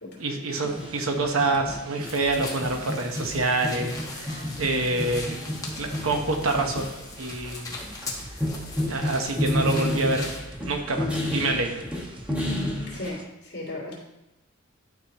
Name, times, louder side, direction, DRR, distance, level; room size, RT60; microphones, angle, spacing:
voice 1, 0.2-5.4 5.7-7.7 8.9-10.3 10.6-11.8, right 2 dB, 85° right, 4 dB, 1.0 m, -27 dB
sound 1, 0.5-13.2, right 1 dB, 25° right, 0.6 m, -44 dB
sound 2, 0.6-13.1, left 1 dB, 5° right, 1.4 m, -31 dB
sound 3, 2.0-10.4, left 3 dB, 15° left, 1.0 m, -40 dB
voice 2, 12.4-14.0, left 1 dB, 55° left, -6 dB, 2.8 m, -36 dB
12.0 x 4.7 x 3.0 m, 0.96 s
head